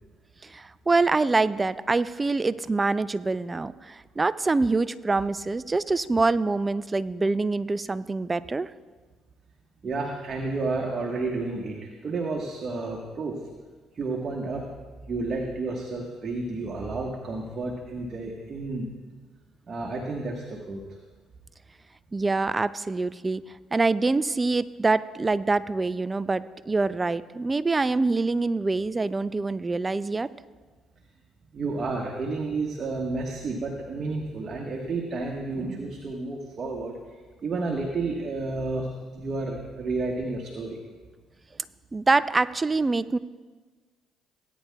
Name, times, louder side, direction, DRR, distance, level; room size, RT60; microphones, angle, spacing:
voice 1, 0.4-8.7 22.1-23.4 23.7-30.3 41.9-43.2, right 3 dB, 25° right, 16 dB, 0.4 m, -25 dB
voice 2, 9.8-13.4 13.9-14.7 15.0-18.9 19.7-20.8 31.5-37.0 37.4-38.9 39.1-40.8, right 3 dB, 45° right, 0 dB, 1.3 m, -31 dB
18.0 x 9.4 x 2.3 m, 1.4 s
hypercardioid pair, 60°, 0 cm